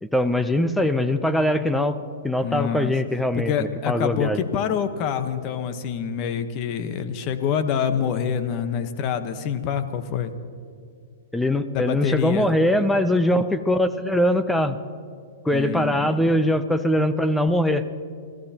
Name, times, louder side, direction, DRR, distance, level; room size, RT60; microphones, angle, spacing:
voice 1, 0.0-4.4 11.3-14.8 15.4-17.8, left 1 dB, 5° left, 10 dB, 0.6 m, -22 dB
voice 2, 2.4-2.9 3.3-10.3 11.7-12.5 15.5-16.3, left 8 dB, 35° left, 9 dB, 1.1 m, -26 dB
29.0 x 14.5 x 2.9 m, 2.3 s
hypercardioid pair, 145°, 0 cm